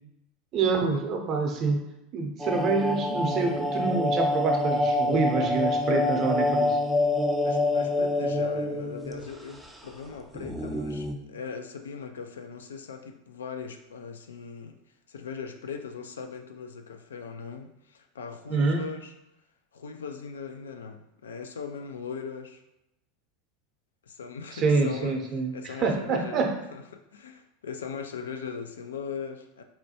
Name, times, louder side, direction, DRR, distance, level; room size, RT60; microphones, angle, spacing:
voice 1, 0.5-1.8 2.1-6.8 18.5-18.9 24.5-26.5, right 4 dB, 40° right, 2 dB, 0.7 m, -26 dB
sound 1, 2.4-9.3 9.6-9.7 10.3-11.1, left 2 dB, 5° right, 0.4 m, -26 dB
voice 2, 7.4-14.8 15.1-19.1 19.7-22.6 24.0-26.4 26.7-29.6, left 6 dB, 75° left, 6 dB, 0.4 m, -39 dB
4.1 x 2.2 x 2.8 m, 0.86 s
figure-of-eight pair, 80°, 0 cm